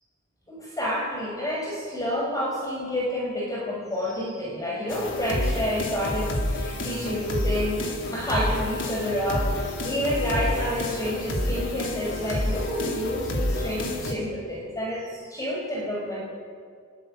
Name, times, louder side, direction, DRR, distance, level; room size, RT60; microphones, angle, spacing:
voice 1, 0.5-16.2, left 1 dB, 15° left, -3 dB, 5.6 m, -29 dB
sound 1, 4.9-14.1, left 1 dB, 60° left, 3.5 m, -29 dB
28.5 x 21.5 x 9.0 m, 2.2 s
head